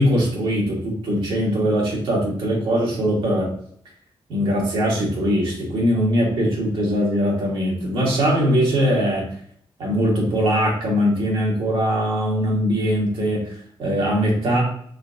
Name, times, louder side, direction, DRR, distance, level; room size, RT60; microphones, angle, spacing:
voice 1, 0.0-3.5 4.3-9.3 9.8-14.6, equal, 90° right, -4 dB, 1.8 m, -21 dB
4.3 x 3.6 x 2.7 m, 0.62 s
cardioid pair, 105°, 9 cm